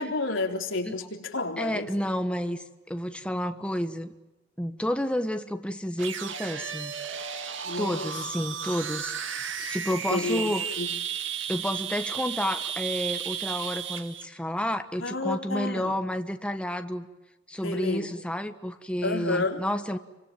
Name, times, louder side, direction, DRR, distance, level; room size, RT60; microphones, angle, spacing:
voice 1, 0.0-1.9 7.6-8.3 9.6-9.8 10.1-11.0 15.0-16.0 17.6-18.2 19.0-19.6, left 2 dB, 85° left, 3 dB, 3.8 m, -31 dB
voice 2, 1.6-4.1 4.6-6.9 7.8-10.6 11.5-17.1 17.5-20.0, equal, 5° left, 7 dB, 1.3 m, -30 dB
sound 1, 6.0-14.2, right 8 dB, 70° right, 2.2 m, -34 dB
30.0 x 24.5 x 7.6 m, 1.0 s
head